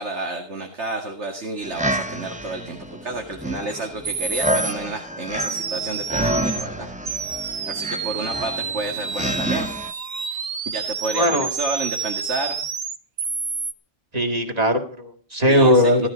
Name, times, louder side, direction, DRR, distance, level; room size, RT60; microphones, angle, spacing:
voice 1, 0.0-7.2 7.7-9.7 10.3-10.4 10.7-12.6 15.5-16.1, right 2 dB, 80° right, 3 dB, 2.3 m, -30 dB
sound 1, 1.6-9.9, right 1 dB, 10° right, 0.7 m, -29 dB
sound 2, 3.7-3.8 4.0-4.7 5.4-6.7 7.1-13.7, right 5 dB, 60° right, 1.2 m, -29 dB
voice 2, 11.1-11.5 14.1-16.1, equal, 35° right, 4 dB, 2.2 m, -19 dB
16.5 x 13.0 x 5.1 m, 0.43 s
omnidirectional pair, 1.1 m